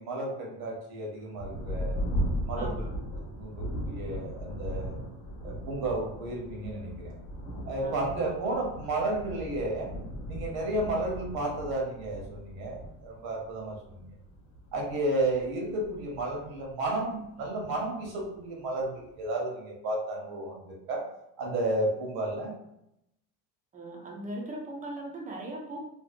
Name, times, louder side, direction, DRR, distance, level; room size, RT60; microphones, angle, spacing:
voice 1, 0.0-2.0 2.4-2.9 3.2-5.0 5.4-7.1 7.7-9.9 10.3-14.0 14.7-21.0 21.4-22.5, right 2 dB, 75° right, -1 dB, 0.9 m, -32 dB
Thunder, 1.3-17.4 18.2-18.3 18.8-19.3, equal, 65° left, 0.8 m, -37 dB
voice 2, 2.6-2.9 7.8-7.9 23.7-25.8, right 1 dB, 25° right, -1 dB, 0.3 m, -39 dB
2.6 x 2.1 x 2.5 m, 0.81 s
cardioid pair, 155°, 37 cm